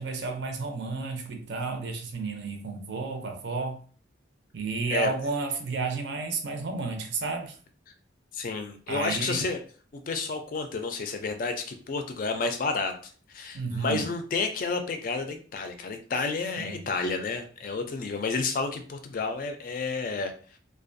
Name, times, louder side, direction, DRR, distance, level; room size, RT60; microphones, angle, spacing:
voice 1, 0.0-3.8 4.5-7.5 8.9-9.4 13.5-14.1 16.6-16.8, right 4 dB, 70° right, 0.5 m, -32 dB
voice 2, 8.3-9.6 9.9-12.9 13.3-20.3, left 4 dB, 45° left, 0.4 m, -30 dB
2.4 x 2.2 x 2.5 m
head